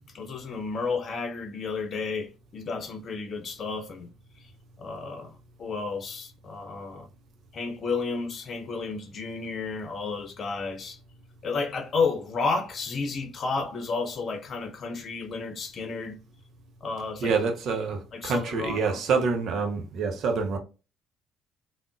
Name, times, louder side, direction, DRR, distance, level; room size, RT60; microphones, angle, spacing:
voice 1, 0.1-4.1 4.8-5.3 5.6-7.1 7.5-11.0 11.4-16.2 16.8-17.3 18.1-19.0, left 4 dB, 50° left, 0.6 m, -32 dB
voice 2, 17.2-20.6, right 5 dB, 60° right, 0.6 m, -27 dB
3.5 x 2.1 x 2.4 m
hypercardioid pair, 50°, 0 cm